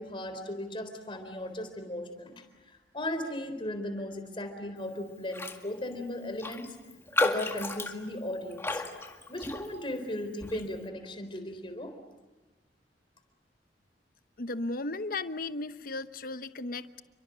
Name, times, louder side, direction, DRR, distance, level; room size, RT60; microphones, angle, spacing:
voice 1, 0.0-2.4 2.9-6.7 7.2-8.8 9.3-11.9, left 1 dB, 30° left, 7 dB, 4.0 m, -36 dB
Raindrop, 5.3-5.6 5.9-6.0 6.4-10.0 10.4-10.7, left 2 dB, 15° left, 1.9 m, -33 dB
voice 2, 14.4-17.0, left 2 dB, 55° left, 12 dB, 1.0 m, -35 dB
29.5 x 24.0 x 7.6 m, 1.1 s
head